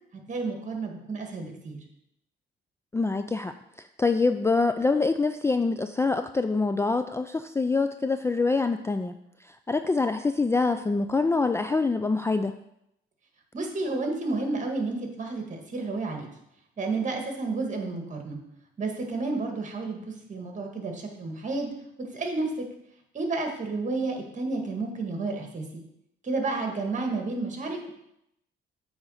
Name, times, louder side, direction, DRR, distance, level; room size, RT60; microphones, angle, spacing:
voice 1, 0.3-1.8 13.5-16.3 16.8-18.4 18.8-21.7 22.0-22.6 23.1-25.8 26.2-27.9, right 3 dB, 40° right, 3 dB, 1.9 m, -31 dB
voice 2, 2.9-9.1 9.4-12.5, left 3 dB, 15° left, 9 dB, 0.3 m, -25 dB
8.3 x 3.9 x 6.4 m, 0.80 s
cardioid pair, 90°, 20 cm